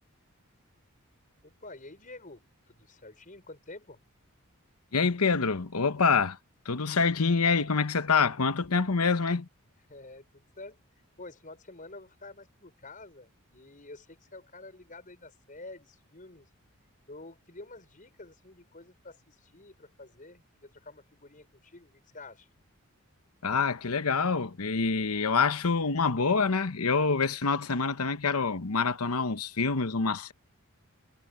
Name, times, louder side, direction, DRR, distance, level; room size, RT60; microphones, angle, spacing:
voice 1, 1.4-4.0 9.9-10.8 11.2-16.5 17.1-22.5, left 2 dB, 35° left, 5.7 m, -49 dB
voice 2, 4.9-6.4 6.6-9.5 23.4-30.3, left 4 dB, 80° left, 1.1 m, -26 dB
head